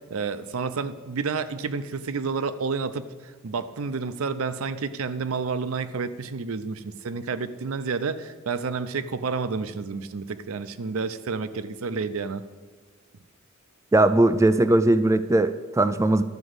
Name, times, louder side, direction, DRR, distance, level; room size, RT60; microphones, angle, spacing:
voice 1, 0.0-3.1 3.4-12.4, right 4 dB, 90° right, 13 dB, 0.6 m, -30 dB
voice 2, 13.9-16.2, right 2 dB, 15° right, 11 dB, 0.3 m, -19 dB
12.0 x 4.9 x 7.9 m, 1.4 s
head